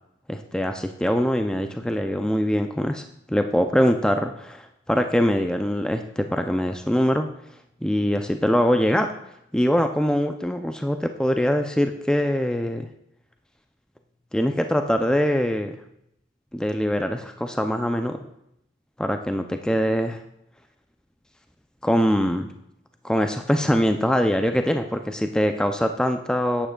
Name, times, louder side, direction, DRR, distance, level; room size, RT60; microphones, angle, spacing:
voice 1, 0.3-7.3 7.8-9.1 9.5-12.9 14.3-15.7 16.5-18.2 19.0-20.2 21.8-22.5 23.0-26.7, equal, 5° left, 6 dB, 0.3 m, -23 dB
11.5 x 8.7 x 2.2 m, 0.79 s
head